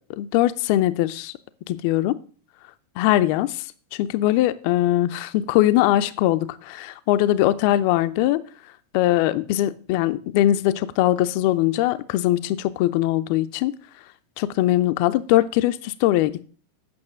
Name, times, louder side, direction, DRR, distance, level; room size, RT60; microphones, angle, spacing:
voice 1, 0.2-1.3 1.7-2.2 3.0-3.6 3.9-8.4 8.9-13.7 14.4-16.4, left 14 dB, 45° left, 13 dB, 0.5 m, -21 dB
8.7 x 6.0 x 6.0 m, 0.41 s
figure-of-eight pair, 90°, 0 cm